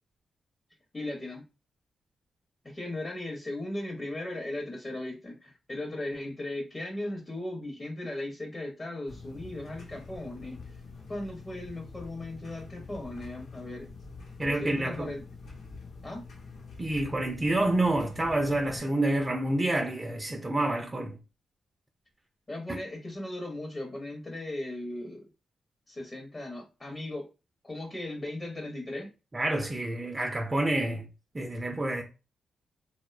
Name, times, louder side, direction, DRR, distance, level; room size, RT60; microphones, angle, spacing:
voice 1, 0.9-1.4 2.6-10.8 11.1-13.9 14.4-15.2 16.0-16.2 22.5-25.3 25.9-27.3 27.6-29.1, left 1 dB, 30° left, 0.6 m, -37 dB
sound 1, 9.1-18.8, left 4 dB, 70° left, 0.8 m, -46 dB
voice 2, 14.4-15.1 16.8-21.2 22.7-22.8 29.3-31.1 31.3-32.0, right 1 dB, 25° right, 0.4 m, -28 dB
2.5 x 2.1 x 2.3 m
cardioid pair, 90°, 0 cm